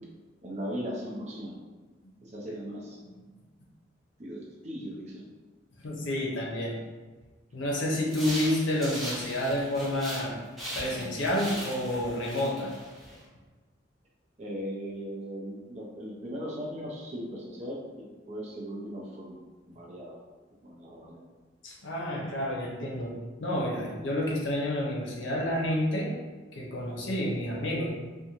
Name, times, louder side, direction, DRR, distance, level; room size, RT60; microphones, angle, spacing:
voice 1, 0.4-1.6 2.2-3.0 4.2-5.3 14.4-19.4 19.7-20.2 20.6-21.2, equal, 35° right, -3 dB, 0.5 m, -38 dB
voice 2, 5.8-6.8 7.5-10.4 10.8-12.7 21.6-26.1 26.5-27.9, left 1 dB, 75° left, -2 dB, 0.6 m, -29 dB
sound 1, 8.1-10.3 10.6-13.2, equal, ahead, 0.6 m, -39 dB
2.5 x 2.2 x 2.9 m, 1.3 s
head